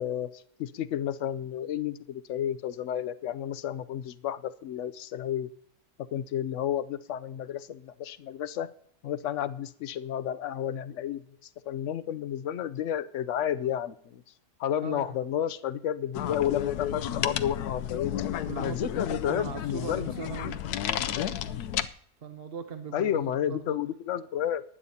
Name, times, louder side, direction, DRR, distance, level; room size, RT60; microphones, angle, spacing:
voice 1, 0.0-5.5 6.1-8.7 9.0-11.2 11.7-14.2 14.6-18.1 18.6-20.1 22.9-24.6, left 10 dB, 65° left, 14 dB, 0.8 m, -31 dB
voice 2, 14.8-15.2 18.5-20.6 22.2-23.8, right 7 dB, 45° right, 7 dB, 0.9 m, -39 dB
sound 1, 16.1-21.9, left 10 dB, 90° left, 1.2 m, -32 dB
19.5 x 10.0 x 2.8 m, 0.65 s
omnidirectional pair, 1.6 m